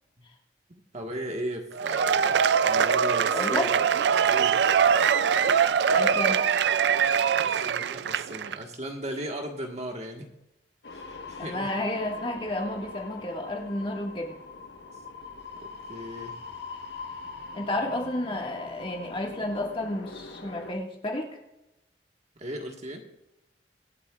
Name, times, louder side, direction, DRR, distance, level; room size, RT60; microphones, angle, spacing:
voice 1, 0.7-3.7 4.2-4.6 7.4-10.3 10.9-11.7 15.6-16.3 22.4-23.0, right 1 dB, 40° right, 2 dB, 1.5 m, -37 dB
Cheering / Applause / Crowd, 1.7-8.6, right 7 dB, 70° right, 0.4 m, -23 dB
voice 2, 3.3-3.7 5.9-6.4 11.4-14.4 17.5-21.4, left 1 dB, 30° left, 1 dB, 1.8 m, -31 dB
sound 1, 10.8-20.7, left 4 dB, 85° left, 1.3 m, -42 dB
24.5 x 8.5 x 2.4 m, 0.94 s
head